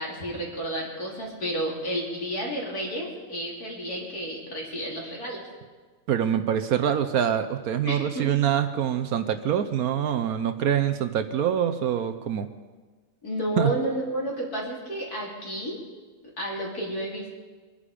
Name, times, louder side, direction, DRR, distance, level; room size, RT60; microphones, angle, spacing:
voice 1, 0.0-5.4 7.9-8.3 13.2-15.8 16.4-17.3, right 1 dB, 65° left, -3 dB, 3.7 m, -31 dB
voice 2, 6.1-12.5 13.6-13.7, right 9 dB, 70° right, 9 dB, 1.1 m, -25 dB
24.0 x 10.5 x 5.0 m, 1.4 s
omnidirectional pair, 1.8 m